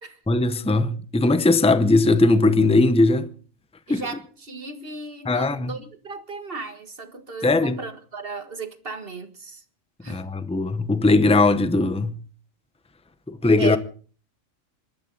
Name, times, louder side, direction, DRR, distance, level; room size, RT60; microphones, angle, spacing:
voice 1, 0.3-3.3 3.9-4.0 5.2-5.7 7.4-7.8 10.1-12.1 13.3-13.8, left 2 dB, 5° left, 0.8 m, -19 dB
voice 2, 3.9-9.6 10.0-10.2 13.6-13.8, right 4 dB, 45° right, 1.9 m, -35 dB
26.5 x 12.5 x 4.0 m
omnidirectional pair, 1.4 m